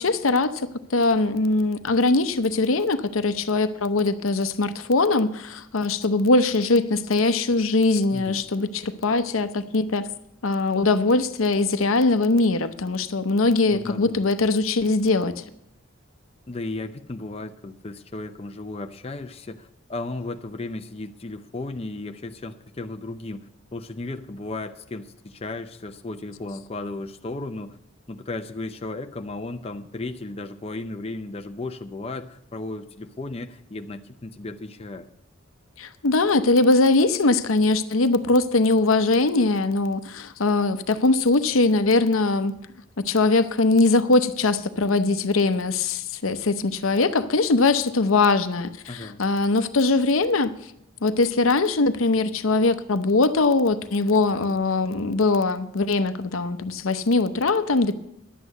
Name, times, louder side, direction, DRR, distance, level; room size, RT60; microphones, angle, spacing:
voice 1, 0.0-10.1 10.4-15.4 35.8-42.5 43.0-50.5 51.0-57.9, left 3 dB, 80° left, 0.8 m, -21 dB
voice 2, 8.1-8.4 13.7-14.2 16.5-27.8 28.1-35.1 48.9-49.2 54.3-54.4, left 2 dB, 30° left, 0.6 m, -35 dB
11.0 x 8.4 x 7.9 m
head